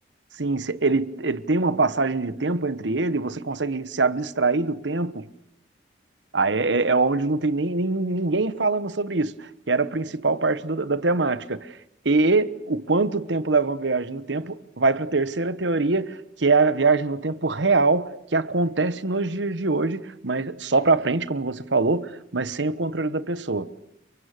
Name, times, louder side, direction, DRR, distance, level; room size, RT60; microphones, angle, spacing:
voice 1, 0.4-5.3 6.3-11.8 12.0-23.8, right 3 dB, 80° right, 1.2 m, -23 dB
30.0 x 23.5 x 6.7 m
head